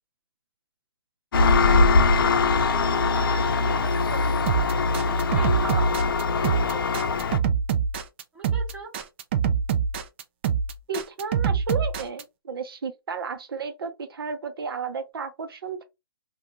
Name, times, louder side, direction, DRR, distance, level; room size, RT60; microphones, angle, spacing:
Engine, 1.3-7.4, left 3 dB, 65° left, 0.6 m, -22 dB
voice 1, 1.4-2.1 2.7-4.5 4.8-6.2 6.6-6.8 8.3-8.9, right 3 dB, 10° right, 0.9 m, -40 dB
sound 1, 4.5-12.2, right 7 dB, 30° right, 0.3 m, -25 dB
voice 2, 10.9-15.8, right 4 dB, 75° right, 0.7 m, -33 dB
2.4 x 2.3 x 2.8 m
hypercardioid pair, 160°, 12 cm